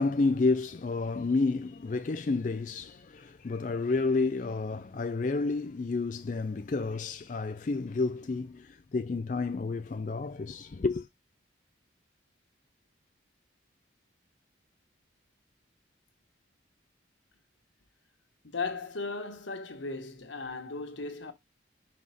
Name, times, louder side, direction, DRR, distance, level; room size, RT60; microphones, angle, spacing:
voice 1, 0.0-11.1, left 3 dB, 45° left, 0.4 m, -30 dB
voice 2, 18.4-21.3, left 3 dB, 90° left, 1.6 m, -36 dB
5.9 x 4.0 x 4.9 m
head